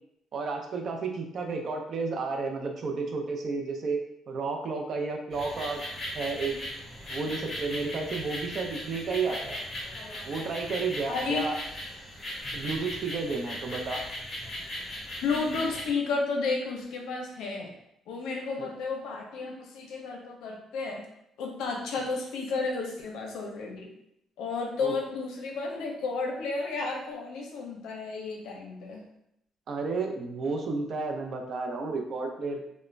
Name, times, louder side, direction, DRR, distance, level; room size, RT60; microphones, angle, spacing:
voice 1, 0.3-4.0 4.3-5.8 6.1-6.6 7.1-9.6 10.2-11.6 12.5-14.0 18.6-18.7 24.8-24.9 29.7-32.8, right 4 dB, 45° right, 2 dB, 0.4 m, -32 dB
sound 1, 5.3-15.9, left 1 dB, 20° left, 0.8 m, -38 dB
voice 2, 11.1-11.5 15.2-17.7 18.1-21.0 21.4-23.9 24.4-29.0, left 4 dB, 85° left, 1 dB, 0.5 m, -32 dB
2.4 x 2.0 x 3.1 m, 0.78 s
cardioid pair, 160°, 0 cm